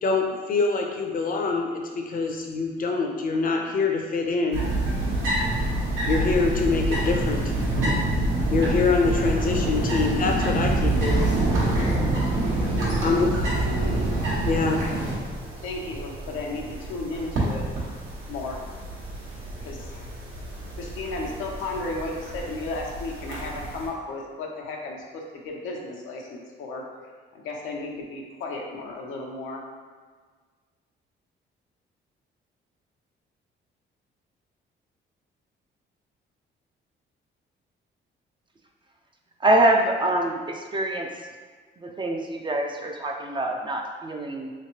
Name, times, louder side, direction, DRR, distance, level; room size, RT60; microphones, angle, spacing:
voice 1, 0.0-4.6 6.1-7.5 8.5-11.4 13.0-13.3 14.4-14.9, left 4 dB, 45° left, 2 dB, 0.6 m, -25 dB
sound 1, 4.5-23.9, right 1 dB, 80° right, 1.2 m, -27 dB
voice 2, 15.6-17.6 18.3-18.7 19.6-20.0 20.8-26.8 27.3-29.6, left 2 dB, 85° left, -1 dB, 0.7 m, -34 dB
voice 3, 39.4-41.1 41.8-44.5, right 1 dB, 25° right, 2 dB, 0.4 m, -24 dB
3.3 x 3.1 x 2.8 m, 1.5 s
cardioid pair, 90°, 20 cm